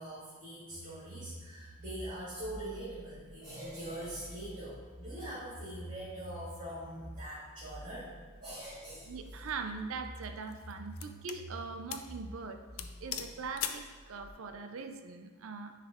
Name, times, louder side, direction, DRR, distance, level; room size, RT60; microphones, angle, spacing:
voice 1, 0.0-8.1 8.4-9.4, right 1 dB, 40° right, -10 dB, 1.9 m, -43 dB
sound 1, 0.7-14.3, equal, 35° left, 1.3 m, -49 dB
voice 2, 9.1-12.6 13.0-15.7, right 4 dB, 65° right, 7 dB, 0.5 m, -41 dB
sound 2, 9.2-9.5 10.2-11.4 11.9-12.1 12.4-12.5 12.8-13.9, left 9 dB, 70° left, 0.4 m, -40 dB
9.5 x 3.3 x 3.5 m, 1.4 s
head